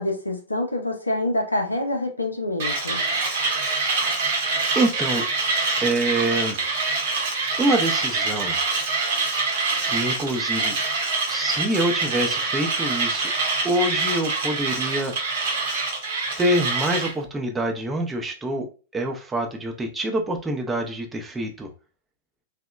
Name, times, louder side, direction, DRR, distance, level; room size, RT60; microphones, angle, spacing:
voice 1, 0.0-3.0, left 1 dB, 85° left, 2 dB, 0.4 m, -26 dB
Mechanisms, 2.6-17.1, right 3 dB, 55° right, 0.8 m, -25 dB
voice 2, 4.7-5.2 5.8-6.7 7.6-8.6 9.8-10.8 11.3-13.3 13.6-15.1 16.4-18.7 18.9-21.7, right 1 dB, 10° right, 3 dB, 0.5 m, -25 dB
2.7 x 2.1 x 2.3 m, 0.36 s
figure-of-eight pair, 100°, 0 cm